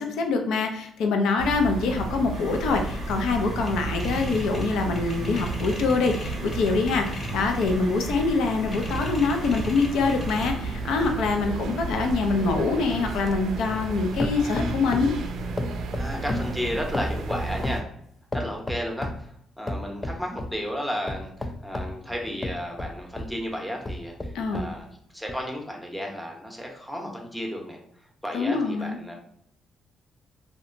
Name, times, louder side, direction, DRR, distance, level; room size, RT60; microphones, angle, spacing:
voice 1, 0.0-15.1 24.3-24.6 28.3-29.0, left 4 dB, 80° left, 4 dB, 0.4 m, -25 dB
sound 1, 1.4-17.8, right 3 dB, 75° right, 0.4 m, -33 dB
sound 2, 2.3-10.5, equal, 35° left, 0.9 m, -38 dB
sound 3, 10.9-13.9 14.2-15.2 15.6-17.9 18.3-19.2 19.7-20.6 21.1-23.4 23.8-24.8 25.3-25.4, left 1 dB, 20° left, 0.3 m, -33 dB
voice 2, 15.9-17.9 18.3-24.9 25.1-29.1, equal, ahead, 0 dB, 0.7 m, -33 dB
2.8 x 2.2 x 2.5 m, 0.69 s
cardioid pair, 90°, 0 cm